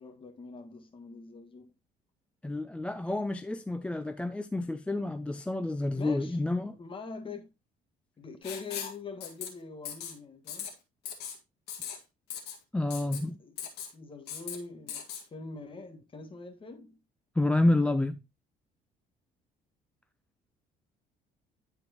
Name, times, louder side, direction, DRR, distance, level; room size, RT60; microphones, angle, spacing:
voice 1, 0.0-1.7 6.0-6.4 6.8-7.5 8.2-10.7 13.1-17.0, left 4 dB, 30° left, 1.6 m, -44 dB
voice 2, 2.4-6.8 12.7-13.4 17.4-18.2, left 2 dB, 5° left, 0.3 m, -29 dB
Writing, 8.4-9.0 9.2-9.5 9.8-10.1 10.5-10.7 11.1-11.4 11.7-12.0 12.3-12.6 12.9-13.2 13.6-13.9 14.3-14.6 14.9-15.2, left 8 dB, 75° left, 1.7 m, -38 dB
10.5 x 4.5 x 2.9 m
cardioid pair, 110°, 17 cm